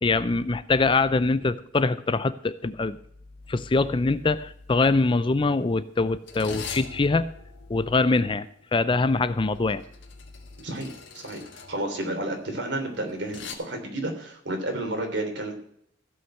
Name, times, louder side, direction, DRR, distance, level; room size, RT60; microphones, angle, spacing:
voice 1, 0.0-3.0 3.5-7.3 7.7-9.8, left 3 dB, 25° left, 14 dB, 0.5 m, -23 dB
sound 1, 3.5-3.7 4.0-4.3 5.0-13.5, left 5 dB, 75° left, 1.9 m, -43 dB
voice 2, 10.6-15.5, right 1 dB, 65° right, 3 dB, 3.3 m, -31 dB
15.5 x 5.6 x 7.7 m, 0.68 s
head